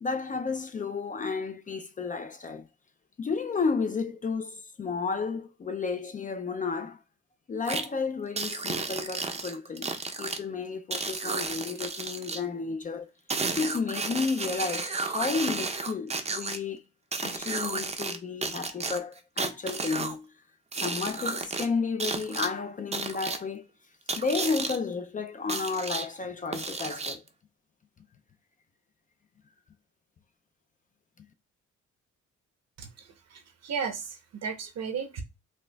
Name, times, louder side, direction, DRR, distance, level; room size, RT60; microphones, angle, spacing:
voice 1, 0.0-2.7 3.2-7.0 7.5-13.1 13.6-16.8 17.2-20.3 20.8-23.7 24.2-27.2 31.2-31.3, left 4 dB, 25° left, 0.4 m, -32 dB
sound 1, 7.7-7.9 8.4-10.4 10.9-12.4 13.3-16.6 17.1-18.2 18.4-20.2 20.7-21.7 22.0-22.5 22.9-23.4 24.1-24.8 25.5-26.1 26.5-27.3, right 4 dB, 20° right, 0.5 m, -32 dB
voice 2, 32.8-35.2, right 6 dB, 60° right, 0.8 m, -35 dB
4.2 x 2.4 x 2.2 m
cardioid pair, 90°, 30 cm